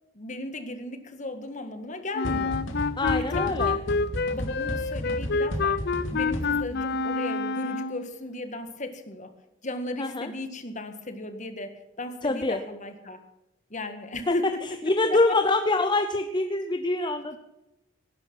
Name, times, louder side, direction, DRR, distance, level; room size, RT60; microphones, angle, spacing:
voice 1, 0.1-2.6 3.2-3.7 4.3-5.8 6.1-9.3 9.6-13.2 13.7-14.6 15.1-15.4, left 2 dB, 40° left, 8 dB, 1.7 m, -35 dB
Wind instrument woodwind instrument, 2.1-8.1, left 4 dB, 55° left, 0.6 m, -28 dB
sound 1, 2.2-6.8, equal, 80° left, 2.7 m, -34 dB
voice 2, 3.0-3.8 10.0-10.3 12.2-12.6 14.8-17.4, left 2 dB, 25° left, 7 dB, 0.8 m, -25 dB
18.0 x 10.5 x 6.1 m, 0.96 s
head